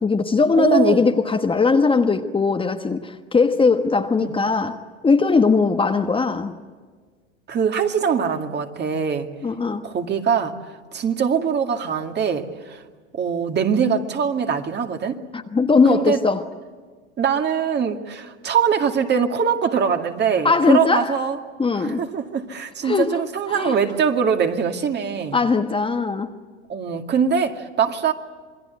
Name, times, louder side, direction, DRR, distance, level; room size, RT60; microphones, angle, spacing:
voice 1, 0.0-6.5 9.4-9.8 15.3-16.4 20.4-21.2 21.6-22.1 22.8-23.2 23.5-23.8 25.3-26.3, left 4 dB, 15° left, 5 dB, 1.3 m, -19 dB
voice 2, 0.6-1.0 4.2-4.3 7.5-9.3 9.8-10.5 10.9-12.8 13.1-15.2 15.9-16.2 17.2-21.4 21.7-25.4 26.7-28.1, right 7 dB, 30° right, 5 dB, 2.2 m, -22 dB
28.0 x 21.5 x 8.3 m, 1.5 s
hypercardioid pair, 100°, 35 cm